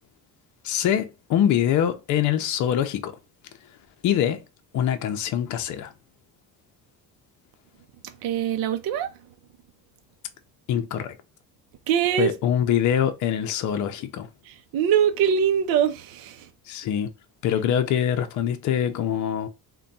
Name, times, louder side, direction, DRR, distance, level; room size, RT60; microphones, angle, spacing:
voice 1, 0.6-3.2 4.0-4.4 4.7-5.9 10.7-11.2 12.2-14.3 16.7-17.1 17.4-19.5, left 9 dB, 50° left, 0.6 m, -24 dB
voice 2, 8.2-9.1 11.9-12.3 14.7-16.5, right 8 dB, 70° right, 0.6 m, -22 dB
3.4 x 2.3 x 4.0 m
cardioid pair, 160°, 37 cm